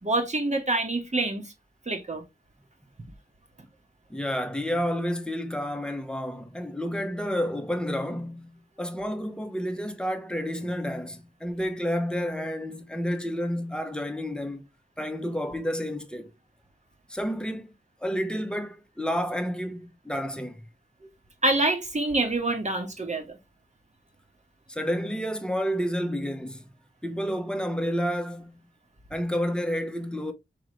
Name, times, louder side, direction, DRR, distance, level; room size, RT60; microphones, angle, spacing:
voice 1, 0.0-1.5 1.9-2.2 21.4-23.2, right 2 dB, 40° right, 1.5 m, -26 dB
voice 2, 4.1-14.7 15.0-16.3 17.1-17.7 18.0-20.6 24.7-26.7 27.0-28.6 29.1-30.3, equal, 5° left, 0.9 m, -30 dB
5.0 x 3.3 x 3.2 m
wide cardioid pair, 65°, 18 cm